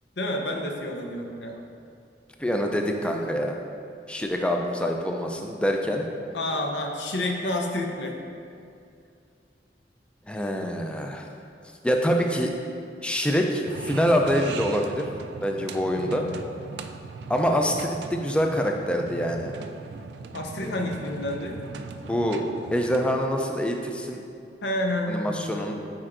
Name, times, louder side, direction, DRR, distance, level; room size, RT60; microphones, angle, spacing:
voice 1, 0.2-1.6 6.3-8.1 16.0-16.3 20.3-21.6 24.6-25.7, left 1 dB, 80° left, 2 dB, 0.6 m, -29 dB
voice 2, 2.4-3.6 4.1-6.0 10.3-11.3 11.8-12.5 13.0-15.1 15.4-16.2 17.3-19.5 20.6-20.7 22.0-22.4 22.7-24.2 25.1-25.7, equal, 5° left, 2 dB, 0.3 m, -25 dB
sound 1, 13.7-23.2, right 4 dB, 70° right, 0.3 m, -39 dB
8.7 x 4.4 x 2.5 m, 2.4 s
head